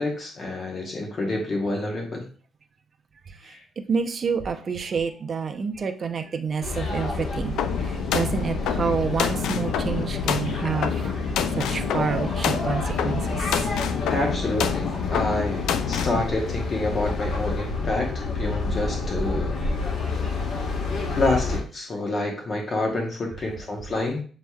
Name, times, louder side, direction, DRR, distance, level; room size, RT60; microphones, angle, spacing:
voice 1, 0.0-2.3 3.4-3.6 14.1-15.6 15.9-19.5 21.1-24.2, left 2 dB, 40° left, 0 dB, 1.1 m, -28 dB
voice 2, 3.3-3.6 3.9-13.7 20.0-20.3, right 5 dB, 45° right, 6 dB, 0.6 m, -29 dB
sound 1, 6.6-21.6, left 3 dB, 70° left, 1.5 m, -29 dB
sound 2, 7.6-16.2, left 8 dB, 85° left, 0.4 m, -28 dB
7.2 x 3.0 x 2.3 m, 0.41 s
cardioid pair, 90°, 0 cm